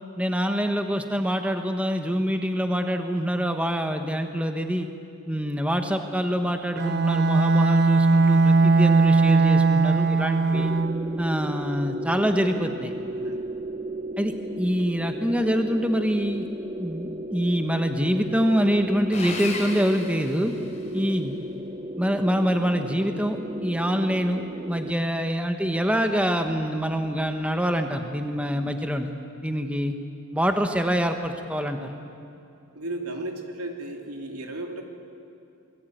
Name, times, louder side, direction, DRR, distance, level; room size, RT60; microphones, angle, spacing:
voice 1, 0.2-4.9 5.3-10.7 11.2-12.9 14.2-16.5 16.8-20.5 20.9-21.4 22.0-29.1 29.4-29.9 30.3-31.9, equal, 5° right, 5 dB, 1.2 m, -25 dB
Bowed string instrument, 6.8-11.1, right 3 dB, 45° right, 1.1 m, -19 dB
sound 1, 10.5-24.9, right 1 dB, 25° right, 0.6 m, -35 dB
voice 2, 13.1-13.4 20.7-21.0 32.7-34.8, right 2 dB, 85° right, 2 dB, 3.2 m, -35 dB
Sawing, 19.1-21.0, left 4 dB, 30° left, 4.0 m, -35 dB
27.0 x 22.0 x 9.3 m, 2.6 s
head